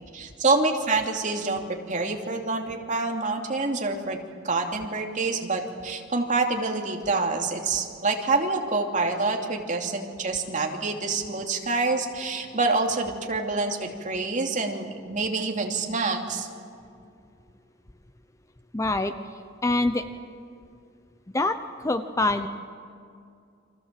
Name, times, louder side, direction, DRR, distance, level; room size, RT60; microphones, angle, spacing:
voice 1, 0.1-4.2 4.4-16.5, right 3 dB, 40° right, 2 dB, 2.8 m, -27 dB
voice 2, 18.7-20.1 21.3-22.5, left 2 dB, 15° left, 9 dB, 0.8 m, -26 dB
30.0 x 25.0 x 7.6 m, 2.4 s
head